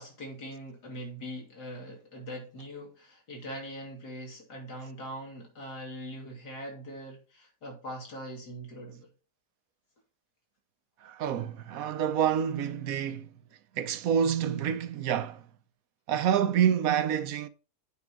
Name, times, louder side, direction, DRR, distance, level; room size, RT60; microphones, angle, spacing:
voice 1, 0.0-9.1, equal, 75° left, 3.4 m, -42 dB
voice 2, 11.0-13.3 13.7-15.5 16.1-17.5, right 8 dB, 65° right, 1.0 m, -27 dB
8.5 x 5.8 x 4.7 m
omnidirectional pair, 1.7 m